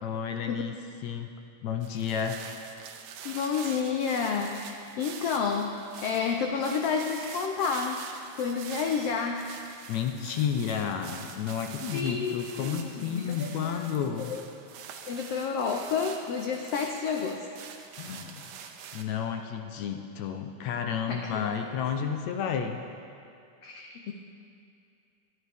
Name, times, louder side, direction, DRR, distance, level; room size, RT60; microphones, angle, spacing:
voice 1, 0.0-0.8 1.0-1.3 1.6-2.4 9.9-14.3 18.0-18.6 18.9-22.8, left 7 dB, 75° left, 5 dB, 1.8 m, -31 dB
sound 1, 1.8-19.0, right 7 dB, 75° right, 1.6 m, -45 dB
voice 2, 3.2-8.1 8.3-9.4 11.9-13.8 14.3-14.4 15.1-17.5 21.1-21.5 23.6-24.1, left 6 dB, 90° left, 3 dB, 1.3 m, -30 dB
21.0 x 11.0 x 3.5 m, 2.5 s
omnidirectional pair, 3.6 m